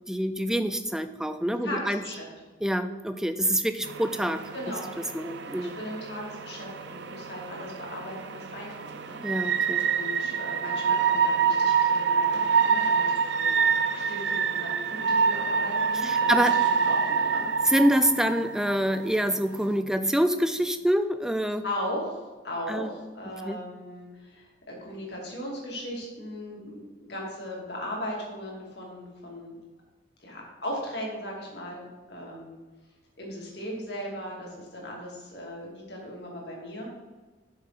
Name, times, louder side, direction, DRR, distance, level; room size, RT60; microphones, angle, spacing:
voice 1, 0.1-2.0 2.6-4.4 5.1-5.8 9.2-9.9 16.0-16.5 17.7-21.6 22.7-22.9 23.5-23.6, equal, 5° right, 9 dB, 0.3 m, -26 dB
voice 2, 1.6-2.3 4.5-4.9 5.6-13.7 13.9-17.7 21.6-29.6 30.2-32.6 33.2-36.9, equal, 60° left, -3 dB, 2.6 m, -38 dB
sound 1, 3.8-19.8, right 6 dB, 65° right, 0.5 m, -27 dB
8.1 x 6.3 x 4.1 m, 1.3 s
head